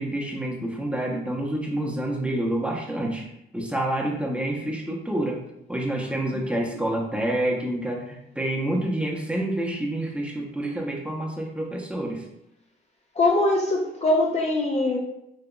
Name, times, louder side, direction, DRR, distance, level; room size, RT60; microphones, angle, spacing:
voice 1, 0.0-3.3 3.5-5.4 5.7-12.3, right 1 dB, 5° right, -2 dB, 0.8 m, -28 dB
voice 2, 13.1-15.0, left 2 dB, 35° left, 0 dB, 0.6 m, -22 dB
5.2 x 2.8 x 2.3 m, 0.81 s
cardioid pair, 90°, 20 cm